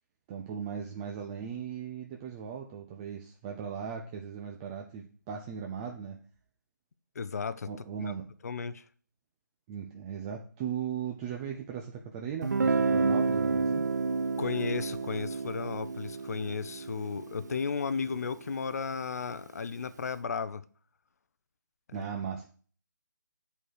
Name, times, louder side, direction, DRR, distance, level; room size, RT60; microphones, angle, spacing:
voice 1, 0.3-6.2 7.7-8.3 9.7-13.8 21.9-22.5, right 7 dB, 15° right, 0.5 m, -38 dB
voice 2, 7.1-7.7 8.4-8.8 14.4-20.6 21.9-22.1, left 5 dB, 55° left, 0.7 m, -34 dB
Guitar, 12.4-18.2, right 4 dB, 65° right, 0.5 m, -30 dB
8.6 x 4.7 x 6.5 m
figure-of-eight pair, 155°, 10 cm